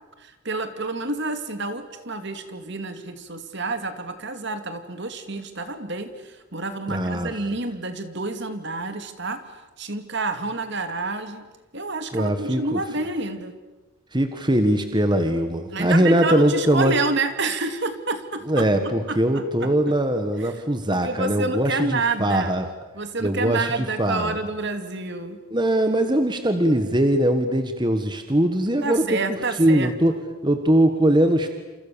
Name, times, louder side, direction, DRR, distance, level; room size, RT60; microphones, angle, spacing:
voice 1, 0.2-9.4 9.8-11.5 11.7-13.5 15.7-18.7 19.1-19.7 20.4-20.5 20.9-22.5 22.9-25.4 28.8-30.2, right 3 dB, 50° right, 8 dB, 2.6 m, -29 dB
voice 2, 6.9-7.3 12.1-12.8 14.1-16.9 18.5-22.7 23.2-24.4 25.5-29.2 29.6-31.5, right 1 dB, 20° right, 7 dB, 1.6 m, -21 dB
29.5 x 28.5 x 7.0 m, 1.1 s
head